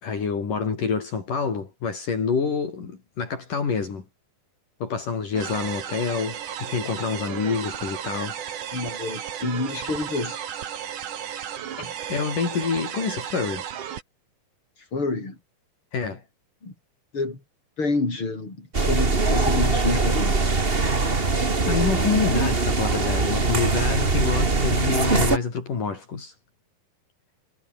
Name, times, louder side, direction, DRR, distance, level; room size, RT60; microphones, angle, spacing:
voice 1, 0.0-4.1 4.8-8.4 12.1-13.7 15.9-16.2 21.6-26.3, left 5 dB, 65° left, 6.1 m, -27 dB
sound 1, 5.3-14.0, right 9 dB, 65° right, 3.4 m, -34 dB
voice 2, 8.7-10.4 11.8-11.9 14.8-15.4 16.6-16.7 17.1-17.4 17.8-20.4, left 3 dB, 35° left, 8.1 m, -28 dB
sound 2, 18.7-25.4, right 3 dB, 20° right, 1.6 m, -22 dB
omnidirectional pair, 4.1 m